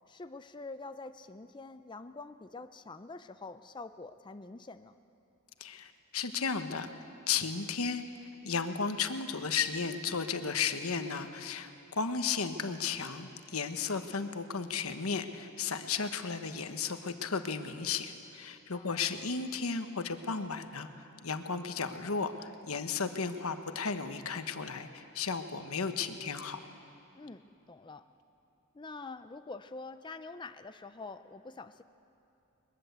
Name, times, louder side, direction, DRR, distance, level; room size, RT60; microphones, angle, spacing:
voice 1, 0.1-5.0 18.7-19.2 27.2-28.1 28.7-31.8, left 3 dB, 20° left, 10 dB, 0.5 m, -46 dB
voice 2, 5.6-6.9 7.3-8.0 8.4-26.6, left 5 dB, 85° left, 8 dB, 1.3 m, -34 dB
21.5 x 21.5 x 8.1 m, 2.8 s
head